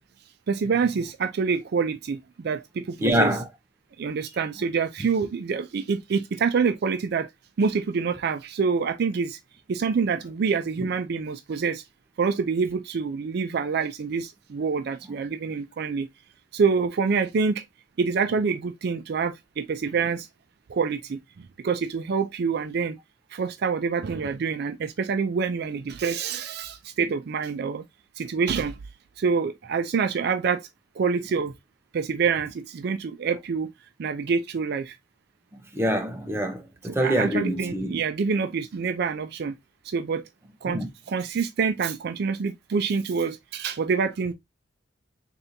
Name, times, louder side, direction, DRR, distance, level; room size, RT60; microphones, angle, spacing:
voice 1, 0.5-3.3 4.0-7.3 7.6-9.4 9.7-11.8 12.2-16.1 16.5-17.6 18.0-20.3 20.7-21.2 21.6-23.0 23.3-27.8 28.2-28.8 29.2-30.7 31.0-31.5 31.9-33.7 34.0-35.0 36.8-39.5 39.8-40.2 40.6-44.3, right 5 dB, 55° right, 0.4 m, -26 dB
voice 2, 3.0-3.4 10.8-10.9 35.7-38.0 40.7-40.9, equal, 15° right, 0.7 m, -25 dB
4.2 x 3.3 x 2.6 m
head